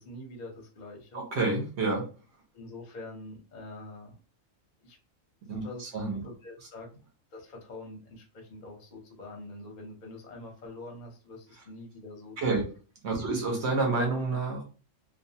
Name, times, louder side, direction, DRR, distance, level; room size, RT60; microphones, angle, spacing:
voice 1, 0.0-1.2 2.5-4.1 4.8-5.0 5.6-5.8 6.1-6.9 7.3-12.7 13.2-13.3, left 2 dB, 45° left, 1 dB, 0.7 m, -45 dB
voice 2, 1.1-2.1 5.5-6.2 12.4-12.6 13.0-14.6, right 3 dB, 55° right, 1 dB, 1.1 m, -29 dB
2.5 x 2.4 x 2.7 m, 0.36 s
omnidirectional pair, 1.5 m